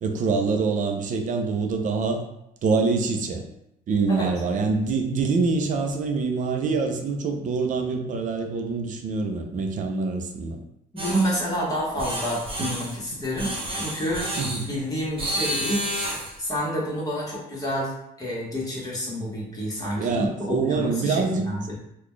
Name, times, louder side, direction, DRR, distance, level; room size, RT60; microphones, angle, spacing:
voice 1, 0.0-2.2 2.6-3.4 3.9-10.6 12.6-12.7 14.4-14.6 20.0-21.5, right 4 dB, 50° right, 4 dB, 0.6 m, -25 dB
voice 2, 10.9-14.3 14.7-16.1 16.4-21.7, equal, 20° left, -6 dB, 1.4 m, -29 dB
sound 1, 11.0-11.4 12.0-13.0 13.4-14.7 15.2-16.4, right 1 dB, 30° right, 0.9 m, -30 dB
3.9 x 2.4 x 3.1 m, 0.80 s
cardioid pair, 110°, 17 cm